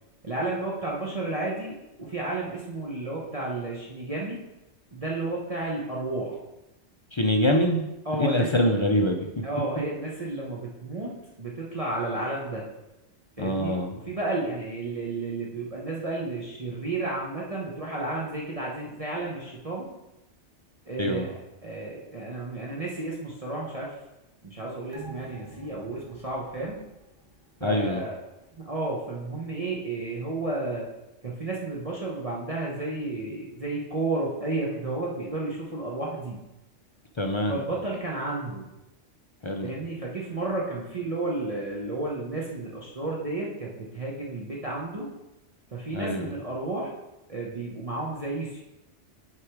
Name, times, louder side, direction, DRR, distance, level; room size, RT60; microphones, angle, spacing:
voice 1, 0.2-4.4 4.9-6.4 8.0-8.7 9.4-11.1 11.4-12.6 13.4-13.7 14.1-19.9 20.8-21.3 21.6-23.9 24.4-26.8 27.6-28.1 28.6-30.8 31.2-36.4 37.5-38.7 39.6-45.1 45.7-46.9 47.3-48.6, right 2 dB, 30° right, -4 dB, 1.0 m, -32 dB
voice 2, 7.1-7.9 8.2-9.3 13.4-13.9 21.0-21.3 27.6-28.0 37.2-37.6 39.4-39.7 45.9-46.3, left 1 dB, 40° left, 2 dB, 0.4 m, -24 dB
sound 1, 24.9-27.8 28.2-28.3, right 4 dB, 50° right, 1.3 m, -47 dB
6.6 x 5.0 x 4.7 m, 0.95 s
omnidirectional pair, 1.2 m